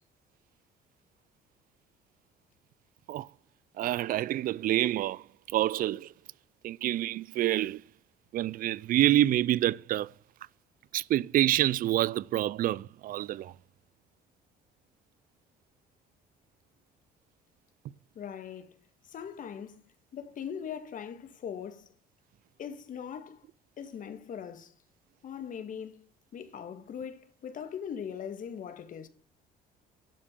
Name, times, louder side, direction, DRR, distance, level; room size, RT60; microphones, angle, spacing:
voice 1, 3.8-6.1 6.6-7.8 8.3-10.1 10.9-13.5, right 13 dB, 55° right, 0.4 m, -27 dB
voice 2, 18.2-18.8 19.1-19.8 20.1-21.9 22.6-23.4 23.8-24.7 25.2-26.1 26.3-29.1, left 8 dB, 50° left, 1.8 m, -40 dB
12.0 x 5.3 x 6.8 m
cardioid pair, 110°, 17 cm